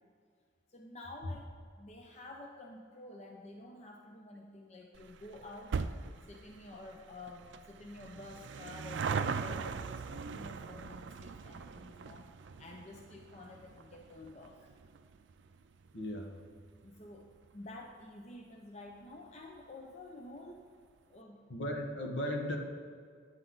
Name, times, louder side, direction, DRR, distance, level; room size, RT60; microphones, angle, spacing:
voice 1, 0.7-5.8 6.2-12.3 12.6-14.6 16.8-17.3 17.5-20.6 21.1-21.4, left 2 dB, 35° left, 1 dB, 0.6 m, -50 dB
sound 1, 4.9-17.7 18.0-18.1 19.0-19.1 19.3-19.4 19.6-19.7, right 5 dB, 70° right, 0.4 m, -41 dB
voice 2, 15.9-16.4 21.5-22.6, left 1 dB, 70° left, 2 dB, 1.3 m, -36 dB
9.8 x 8.1 x 3.9 m, 2.1 s
head